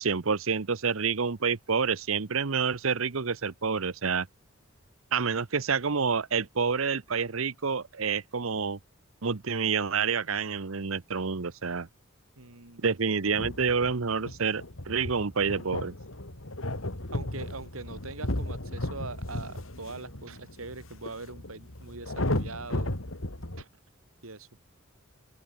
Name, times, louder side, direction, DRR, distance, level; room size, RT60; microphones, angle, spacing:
voice 1, 0.0-4.3 5.1-8.8 9.2-11.9 12.8-15.9, right 5 dB, 75° right, 0.9 m, -28 dB
voice 2, 12.4-13.0 17.1-22.9 24.2-24.5, right 3 dB, 90° right, 3.1 m, -42 dB
sound 1, 13.3-23.6, left 1 dB, 70° left, 3.2 m, -35 dB
open air
head